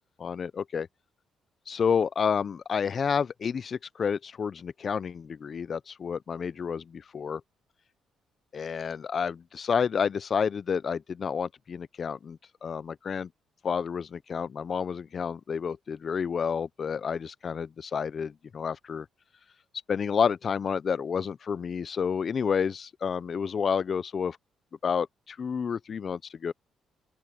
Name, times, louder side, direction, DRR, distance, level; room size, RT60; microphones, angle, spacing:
voice 1, 0.2-0.9 1.7-7.4 8.5-13.3 13.6-19.1 19.9-24.4 24.8-26.5, left 6 dB, 45° left, 0.6 m, -30 dB
open air
cardioid pair, 90°, 0 cm